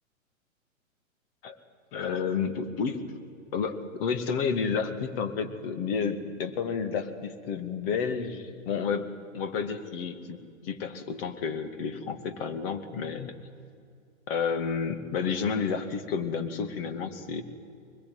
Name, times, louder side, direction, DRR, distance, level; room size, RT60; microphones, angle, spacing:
voice 1, 1.9-3.0 3.5-10.4 10.6-13.4 14.3-17.4, left 6 dB, 45° left, 8 dB, 2.5 m, -31 dB
23.0 x 21.0 x 9.6 m, 2.3 s
figure-of-eight pair, 115°, 41 cm